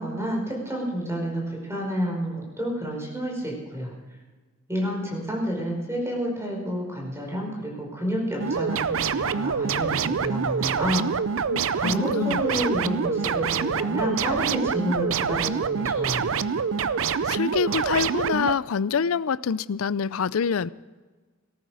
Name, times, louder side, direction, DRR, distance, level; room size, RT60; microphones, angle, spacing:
voice 1, 0.0-3.9 4.7-11.1 11.7-16.3, equal, 15° right, -2 dB, 5.0 m, -29 dB
sound 1, 8.4-18.5, right 6 dB, 70° right, 0.5 m, -26 dB
voice 2, 11.5-12.6 17.3-20.7, left 6 dB, 80° left, 19 dB, 0.5 m, -26 dB
18.0 x 13.5 x 4.9 m, 1.3 s
head